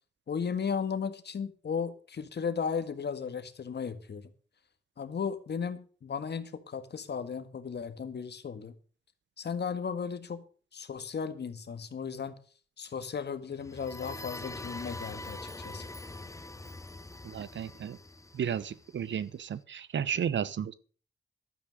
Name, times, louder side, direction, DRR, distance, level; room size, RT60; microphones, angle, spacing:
voice 1, 0.3-4.3 5.0-8.8 9.4-10.5 10.7-12.4 12.8-15.9, left 6 dB, 60° left, 1.7 m, -35 dB
sound 1, 13.5-19.3, left 2 dB, 15° left, 1.0 m, -44 dB
voice 2, 17.2-18.0 18.3-20.7, right 8 dB, 70° right, 0.9 m, -33 dB
12.0 x 9.2 x 6.5 m
cardioid pair, 65°, 20 cm